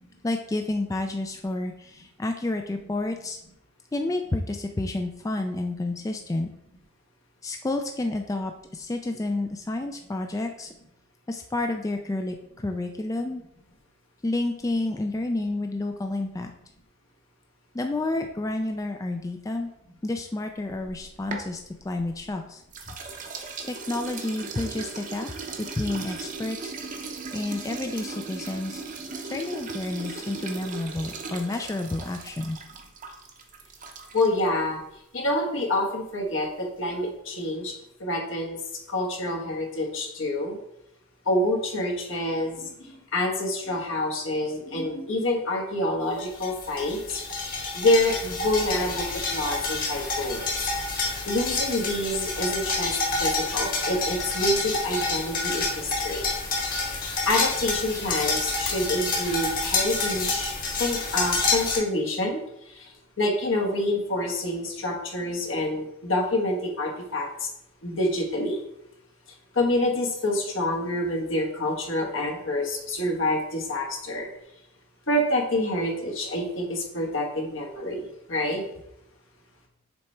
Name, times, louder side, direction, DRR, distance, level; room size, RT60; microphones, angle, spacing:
voice 1, 0.2-3.4 3.9-6.5 7.4-10.7 11.3-13.4 14.2-16.5 17.7-19.7 20.0-21.6 21.8-22.6 22.9-23.0 23.7-25.3 25.7-26.7 27.3-28.8 29.2-32.6, left 2 dB, 15° left, 4 dB, 0.3 m, -30 dB
sound 1, 20.7-22.3 22.7-34.5, right 4 dB, 40° right, 0.7 m, -38 dB
voice 2, 34.1-34.8 35.1-37.7 38.0-38.6 38.9-40.6 41.3-47.2 47.7-50.7 51.3-56.2 57.3-62.4 62.8-62.9 63.2-67.3 67.8-68.6 69.5-74.3 75.1-78.6, left 1 dB, 75° left, 0 dB, 1.3 m, -27 dB
sound 2, 46.2-61.8, left 3 dB, 45° left, 1.4 m, -28 dB
7.0 x 3.3 x 4.3 m, 0.78 s
head